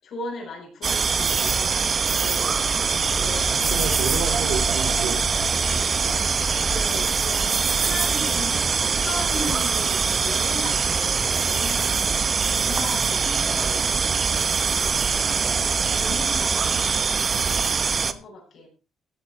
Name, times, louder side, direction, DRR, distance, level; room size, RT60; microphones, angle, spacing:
voice 1, 0.0-2.6 3.2-3.7 6.7-18.7, left 2 dB, 55° left, -1 dB, 8.0 m, -37 dB
sound 1, 0.8-18.1, right 5 dB, 35° right, 1.0 m, -23 dB
sound 2, 2.3-13.7, left 2 dB, 85° left, 3.2 m, -36 dB
voice 2, 3.1-5.2 5.6-6.3, right 7 dB, 90° right, 8 dB, 2.8 m, -32 dB
15.5 x 9.5 x 4.5 m, 0.33 s
cardioid pair, 135°, 0 cm